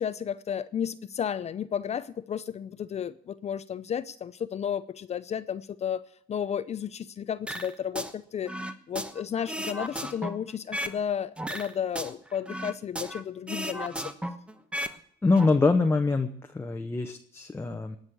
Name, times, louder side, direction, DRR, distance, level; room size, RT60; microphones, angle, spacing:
voice 1, 0.0-6.0 6.3-8.5 8.9-14.0, left 8 dB, 40° left, 0.6 m, -33 dB
sound 1, 7.5-8.1 8.5-11.0 11.4-13.2 13.5-15.0 15.2-15.5, equal, 5° right, 1.1 m, -35 dB
voice 2, 15.2-18.0, left 3 dB, 15° left, 0.9 m, -24 dB
19.0 x 6.5 x 8.5 m
cardioid pair, 110°, 17 cm